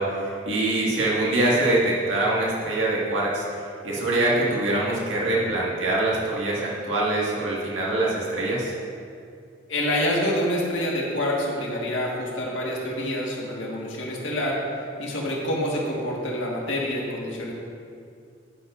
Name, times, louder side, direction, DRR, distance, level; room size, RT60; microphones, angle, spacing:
voice 1, 0.0-3.4 3.8-8.7, right 2 dB, 85° right, -5 dB, 1.9 m, -24 dB
voice 2, 9.7-14.6 15.0-17.5, left 1 dB, 90° left, -3 dB, 1.8 m, -27 dB
9.9 x 9.2 x 2.6 m, 2.4 s
head